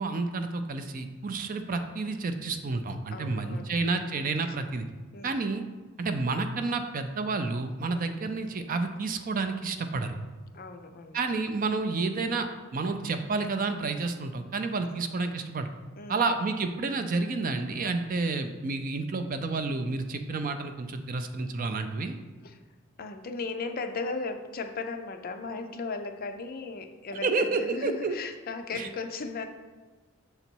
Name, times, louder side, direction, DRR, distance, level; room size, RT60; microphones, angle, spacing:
voice 1, 0.0-4.8 5.2-5.6 6.0-10.2 11.1-15.7 16.1-22.2 27.2-28.1 28.7-28.9, right 3 dB, 40° right, 7 dB, 0.4 m, -30 dB
voice 2, 3.1-3.8 5.1-5.3 7.9-8.1 10.5-11.2 14.8-15.0 16.0-16.2 22.4-22.6 23.0-29.5, left 4 dB, 40° left, 6 dB, 0.5 m, -36 dB
6.8 x 4.0 x 4.5 m, 1.3 s
head